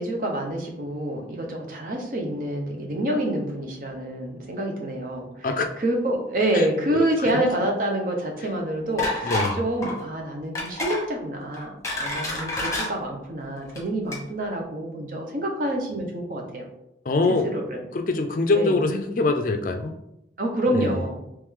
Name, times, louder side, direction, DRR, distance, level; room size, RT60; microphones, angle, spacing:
voice 1, 0.0-5.5 5.8-11.7 12.0-16.7 17.3-17.8 18.5-18.8 20.4-21.2, right 1 dB, 50° right, 1 dB, 0.8 m, -27 dB
sound 1, 9.0-9.6 9.8-10.0 10.5-11.0 11.5-12.9 13.6-13.8 14.1-14.2, left 1 dB, 15° left, 1.0 m, -28 dB
voice 2, 9.2-9.6 17.1-17.5 17.9-20.0 20.7-20.9, left 3 dB, 45° left, 5 dB, 0.4 m, -23 dB
3.1 x 3.1 x 3.6 m, 0.82 s
head